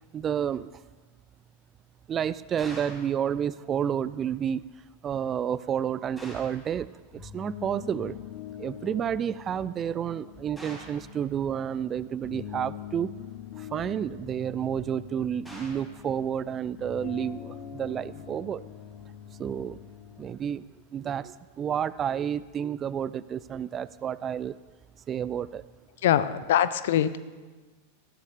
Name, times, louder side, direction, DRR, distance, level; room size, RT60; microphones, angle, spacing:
voice 1, 0.1-0.8 2.1-4.7 5.0-8.2 8.6-13.1 13.6-18.6 19.4-19.8 20.2-20.6 20.9-24.6 25.1-25.6, right 9 dB, 25° right, 18 dB, 0.3 m, -30 dB
sound 1, 2.6-3.1 6.2-6.6 10.6-11.0 15.4-15.9, equal, 5° left, 4.3 m, -44 dB
sound 2, 7.1-20.4, left 10 dB, 40° left, 1.2 m, -44 dB
voice 2, 26.0-27.2, left 11 dB, 55° left, 15 dB, 0.6 m, -23 dB
19.5 x 14.0 x 2.8 m, 1.3 s
figure-of-eight pair, 90°, 0 cm